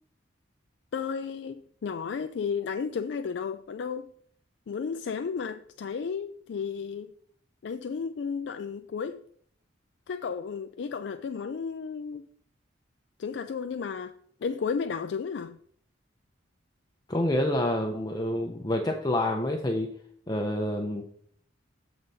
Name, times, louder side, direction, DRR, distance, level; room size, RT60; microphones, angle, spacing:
voice 1, 0.9-4.1 4.7-7.1 7.6-9.2 10.1-12.3 13.2-14.1 14.4-15.6, left 6 dB, 65° left, 0.3 m, -33 dB
voice 2, 17.1-19.9 20.3-21.1, left 1 dB, 20° left, 0.6 m, -28 dB
8.0 x 3.9 x 5.5 m
head